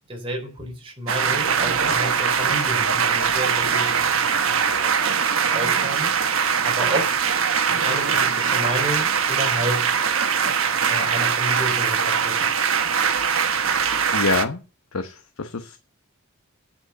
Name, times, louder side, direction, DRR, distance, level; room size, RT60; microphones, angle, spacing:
voice 1, 0.1-7.2 7.7-9.9 10.9-12.5, right 1 dB, 25° right, 3.8 m, -31 dB
sound 1, 1.1-14.4, right 6 dB, 70° right, 1.2 m, -22 dB
voice 2, 14.1-14.6 14.9-15.8, left 3 dB, 80° left, 1.0 m, -26 dB
9.1 x 8.1 x 7.0 m
head